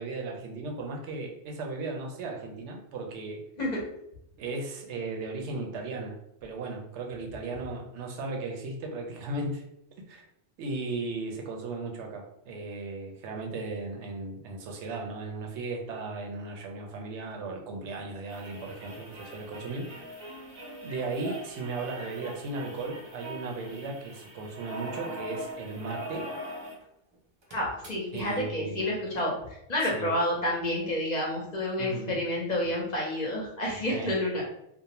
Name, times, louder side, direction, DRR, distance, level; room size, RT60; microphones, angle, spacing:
voice 1, 0.0-3.4 4.4-9.6 10.1-10.3 10.6-20.2 20.8-26.3 28.1-28.9 29.9-30.1 31.8-32.2 33.9-34.2, right 3 dB, 70° right, 2 dB, 0.8 m, -36 dB
sound 1, 18.3-26.8 27.1-27.2 27.4-28.2 29.2-29.3, equal, 50° right, 0.3 m, -42 dB
voice 2, 27.5-34.4, left 1 dB, 45° left, -3 dB, 0.6 m, -29 dB
2.6 x 2.0 x 2.8 m, 0.78 s
omnidirectional pair, 1.2 m